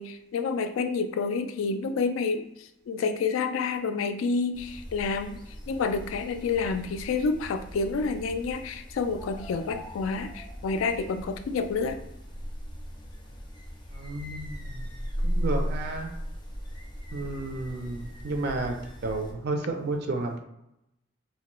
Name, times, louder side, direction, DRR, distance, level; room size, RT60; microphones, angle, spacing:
voice 1, 0.0-2.4 2.9-5.4 5.7-12.0, left 4 dB, 80° left, 8 dB, 0.3 m, -29 dB
sound 1, 4.5-19.3, equal, 25° left, 0.5 m, -37 dB
voice 2, 13.9-14.9 15.2-16.1 17.1-18.7 19.0-20.4, right 2 dB, 55° right, 3 dB, 0.4 m, -32 dB
2.9 x 2.2 x 2.9 m, 0.86 s
head